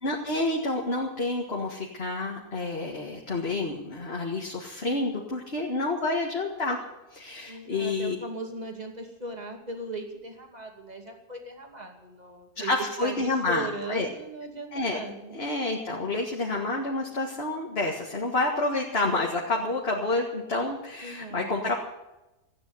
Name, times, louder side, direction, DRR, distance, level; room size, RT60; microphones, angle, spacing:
voice 1, 0.0-6.8 7.1-8.2 12.6-14.1 14.7-15.0 15.3-21.7, left 2 dB, 40° left, -1 dB, 2.1 m, -29 dB
voice 2, 7.5-12.7 13.0-15.4 21.0-21.7, right 2 dB, 25° right, 2 dB, 2.5 m, -38 dB
15.0 x 9.6 x 9.6 m, 0.99 s
omnidirectional pair, 1.7 m